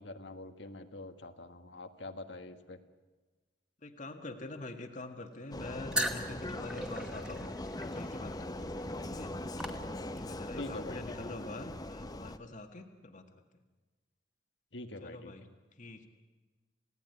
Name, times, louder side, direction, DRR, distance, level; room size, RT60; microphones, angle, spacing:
voice 1, 0.0-2.8 10.6-11.3 14.7-15.3, left 2 dB, 80° left, 7 dB, 1.6 m, -45 dB
voice 2, 3.8-7.5 7.8-9.3 10.1-13.4 15.0-15.5 15.8-16.1, left 2 dB, 45° left, 4 dB, 1.8 m, -45 dB
Vehicle, 5.5-12.4, left 1 dB, 20° left, 0.9 m, -41 dB
sound 1, 5.9-10.4, equal, 5° right, 2.4 m, -39 dB
29.0 x 17.0 x 9.7 m, 1.3 s
head